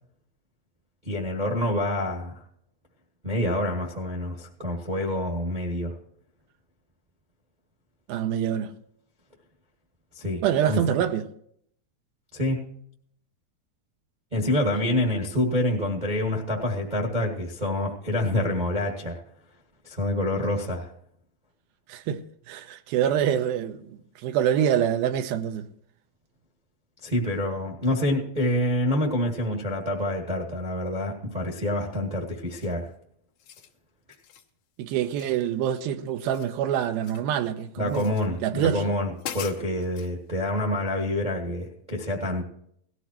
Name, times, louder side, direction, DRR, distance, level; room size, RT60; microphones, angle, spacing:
voice 1, 1.0-2.4 3.2-5.9 10.1-10.4 10.7-10.8 12.3-12.7 14.3-19.2 19.8-20.9 27.0-32.9 37.8-42.4, left 1 dB, 35° right, 0.7 m, -27 dB
voice 2, 8.1-8.7 10.4-11.2 14.8-14.9 21.9-23.9 24.2-25.7 34.8-38.1 38.4-38.9, right 9 dB, 85° right, 2.6 m, -25 dB
sound 1, 32.5-32.9 33.3-33.7 34.1-34.5 35.2-35.8 36.1-37.3 37.9-38.3 38.8-38.9 39.2-40.1, left 10 dB, 85° left, 3.1 m, -42 dB
18.0 x 14.0 x 3.0 m
omnidirectional pair, 4.2 m